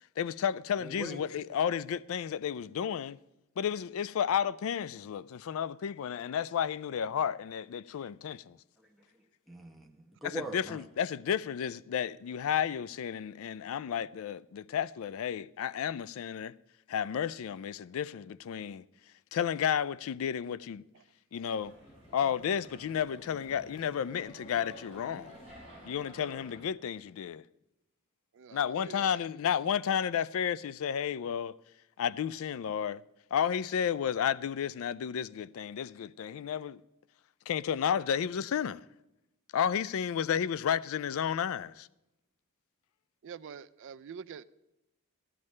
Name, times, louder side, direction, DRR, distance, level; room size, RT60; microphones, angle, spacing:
voice 1, 0.2-3.2 3.6-8.6 10.2-16.5 16.9-18.8 19.3-20.8 21.3-21.7 22.1-25.4 25.8-27.4 28.5-31.6 32.0-33.0 33.3-36.8 37.5-38.8 39.5-41.9, left 8 dB, 65° left, 0.3 m, -32 dB
voice 2, 0.8-1.2 8.9-10.8, right 1 dB, ahead, 1.0 m, -42 dB
sound 1, 21.6-26.6, equal, 35° left, 5.0 m, -51 dB
voice 3, 28.3-29.2 40.4-40.5 43.2-44.4, right 7 dB, 55° right, 0.4 m, -46 dB
14.0 x 12.0 x 3.2 m
head